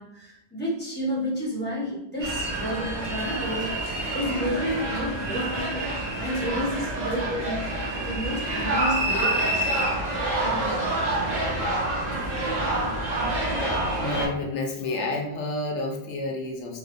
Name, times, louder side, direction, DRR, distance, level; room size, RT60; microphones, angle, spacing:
voice 1, 0.0-7.6 7.9-9.9 10.4-11.3, equal, 10° left, -7 dB, 1.1 m, -31 dB
sound 1, 2.2-14.3, right 1 dB, 40° right, 0.9 m, -27 dB
voice 2, 14.0-16.8, left 2 dB, 85° left, 1 dB, 1.0 m, -30 dB
3.2 x 3.0 x 2.6 m, 0.90 s
omnidirectional pair, 1.2 m